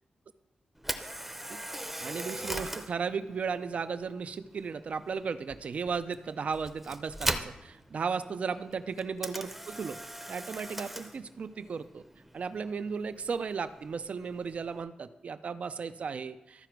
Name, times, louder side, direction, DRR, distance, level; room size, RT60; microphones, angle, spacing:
Camera, 0.8-14.8, right 1 dB, 10° right, 0.7 m, -41 dB
voice 1, 1.5-10.0 10.3-12.0 12.3-16.7, right 5 dB, 55° right, 12 dB, 0.5 m, -35 dB
13.5 x 4.9 x 4.6 m, 0.96 s
wide cardioid pair, 130°, 3 cm